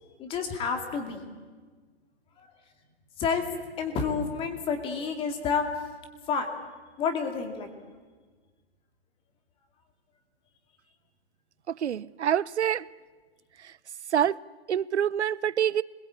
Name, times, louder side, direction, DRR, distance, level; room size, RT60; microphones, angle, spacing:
voice 1, 0.2-1.3 2.4-2.5 3.2-3.5 3.8-5.6 6.3-6.5 7.0-7.7, left 5 dB, 15° left, 2.4 m, -29 dB
voice 2, 11.7-12.9 13.6-13.7 14.1-14.4 14.7-15.8, right 9 dB, 85° right, 0.7 m, -26 dB
26.5 x 21.5 x 8.7 m
hypercardioid pair, 155°, 33 cm